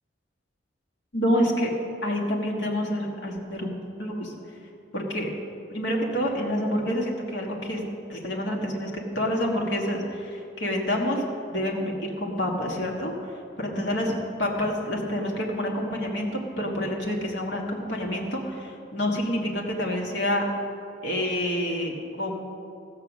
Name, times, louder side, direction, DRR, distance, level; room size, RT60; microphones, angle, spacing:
voice 1, 1.1-1.7 2.0-3.7 4.0-4.4 4.9-5.3 5.7-7.8 8.1-11.2 11.5-14.1 14.4-20.5 21.0-22.4, equal, 65° left, -1 dB, 1.6 m, -28 dB
16.0 x 6.9 x 6.0 m, 2.6 s
head